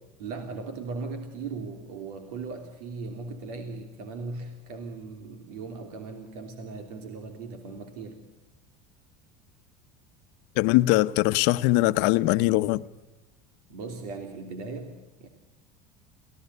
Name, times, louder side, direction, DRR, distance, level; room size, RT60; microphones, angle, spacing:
voice 1, 0.2-8.2 13.7-15.3, right 4 dB, 85° right, 3.0 m, -38 dB
voice 2, 10.6-12.8, left 18 dB, 65° left, 0.9 m, -21 dB
24.0 x 17.5 x 6.7 m
supercardioid pair, 120°, 19 cm